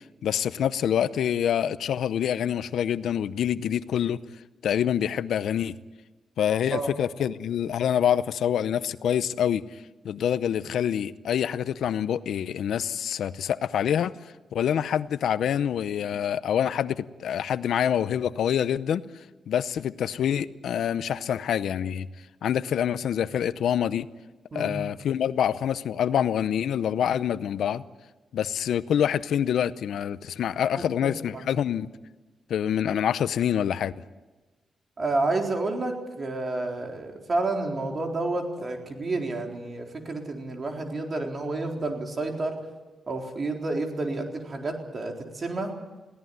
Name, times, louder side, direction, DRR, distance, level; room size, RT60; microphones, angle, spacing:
voice 1, 0.2-4.2 4.6-5.7 6.4-14.1 14.5-19.0 19.5-22.1 22.4-24.1 24.5-27.8 28.3-31.9 32.5-33.9, left 9 dB, 85° left, 15 dB, 0.7 m, -26 dB
voice 2, 35.0-42.6 43.1-45.7, right 2 dB, 40° right, 2 dB, 4.1 m, -30 dB
22.5 x 17.0 x 9.4 m, 1.2 s
cardioid pair, 105°, 0 cm